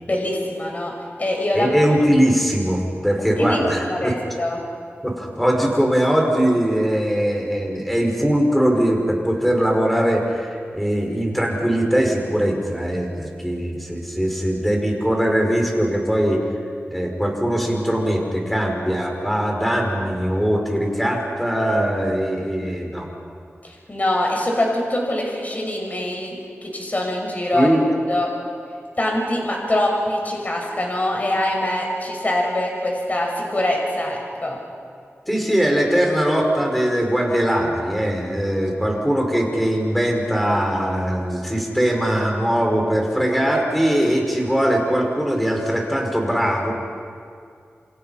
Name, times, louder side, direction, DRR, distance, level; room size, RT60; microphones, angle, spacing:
voice 1, 0.1-1.8 3.3-4.6 23.6-27.7 28.1-28.3 29.0-34.6, left 1 dB, 35° left, 0 dB, 6.2 m, -24 dB
voice 2, 1.5-4.2 5.0-16.4 16.9-23.1 27.5-27.8 35.3-46.7, equal, ahead, 1 dB, 5.3 m, -21 dB
28.5 x 26.5 x 5.8 m, 2.3 s
wide cardioid pair, 90°, 5 cm